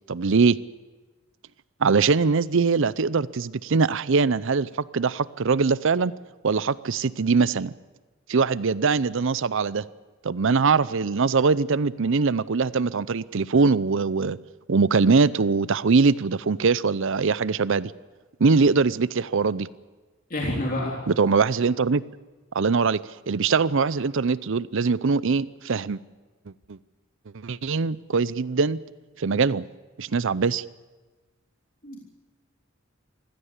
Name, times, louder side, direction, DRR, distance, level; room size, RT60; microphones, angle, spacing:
voice 1, 0.1-0.6 1.8-6.1 6.4-7.7 8.3-9.8 10.2-14.4 14.7-17.9 18.4-19.7 21.1-22.0 22.5-23.0 23.3-26.0 26.7-26.8 27.3-28.8 29.2-29.7 30.0-30.7, right 4 dB, 65° right, 18 dB, 0.6 m, -22 dB
voice 2, 20.3-21.0 31.8-32.0, left 1 dB, 45° left, -2 dB, 3.4 m, -28 dB
24.5 x 16.0 x 8.2 m, 1.2 s
head